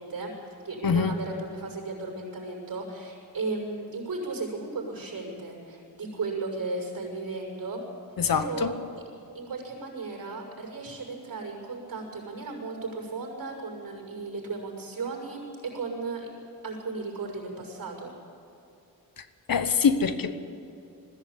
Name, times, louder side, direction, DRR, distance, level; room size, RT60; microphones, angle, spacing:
voice 1, 0.0-7.8 8.3-8.8 9.3-16.3 16.6-18.1, right 3 dB, 65° right, -1 dB, 6.3 m, -35 dB
voice 2, 0.8-1.2 8.2-8.7 19.2-20.3, left 6 dB, 70° left, 10 dB, 1.2 m, -25 dB
20.5 x 15.5 x 8.4 m, 2.7 s
wide cardioid pair, 135°, 36 cm